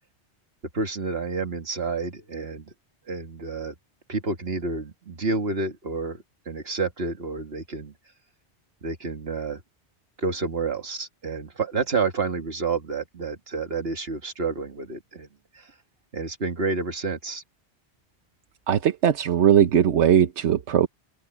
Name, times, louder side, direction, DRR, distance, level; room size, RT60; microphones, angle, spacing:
voice 1, 0.7-2.7 3.1-3.7 4.1-7.9 8.8-9.6 10.2-15.3 15.5-15.7 16.1-17.4, right 4 dB, 65° right, 2.2 m, -29 dB
voice 2, 18.7-20.9, right 9 dB, 90° right, 1.2 m, -19 dB
open air
omnidirectional pair, 1.1 m